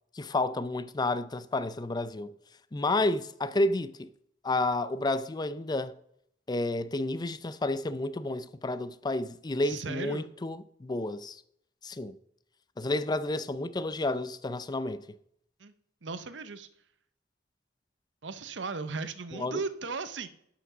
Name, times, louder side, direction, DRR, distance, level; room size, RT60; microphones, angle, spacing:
voice 1, 0.1-2.3 2.7-4.1 4.4-5.9 6.5-11.4 11.8-12.2 12.8-15.0 19.3-19.6, left 2 dB, 25° left, 0.5 m, -30 dB
voice 2, 9.6-10.3 15.6-15.7 16.0-16.7 18.2-20.3, right 4 dB, 75° right, 0.8 m, -36 dB
11.5 x 5.9 x 6.0 m
head